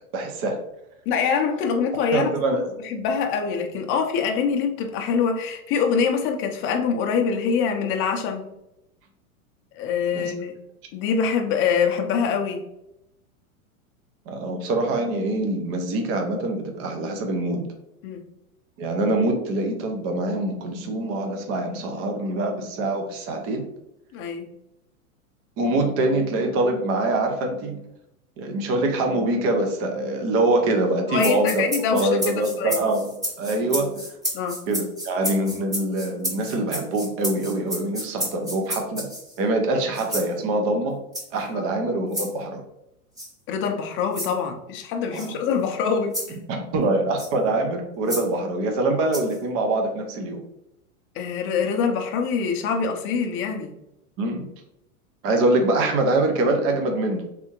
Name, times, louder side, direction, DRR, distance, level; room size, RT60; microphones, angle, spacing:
voice 1, 0.1-0.6 2.1-2.6 10.1-10.3 14.3-17.7 18.8-23.6 25.6-27.8 28.4-33.1 33.4-33.9 34.7-39.1 39.4-41.0 41.3-42.6 45.1-45.4 46.5-50.4 54.2-54.5 55.2-57.3, right 2 dB, 35° right, 3 dB, 0.7 m, -24 dB
voice 2, 1.1-2.3 2.8-8.4 9.7-10.5 10.9-12.6 18.0-18.2 24.1-24.5 31.1-32.1 32.6-32.8 34.3-34.6 41.5-41.7 43.5-46.4 51.1-53.8, left 6 dB, 30° left, 4 dB, 0.6 m, -24 dB
sound 1, 31.2-39.4 39.9-40.3 41.1-41.4 42.1-42.3 43.2-43.3 44.1-44.3 45.1-45.3 46.1-46.3 47.2-47.3 48.1-48.3 49.1-49.4, equal, 10° right, 1.0 m, -31 dB
3.5 x 3.4 x 2.9 m, 0.85 s
hypercardioid pair, 115°, 43 cm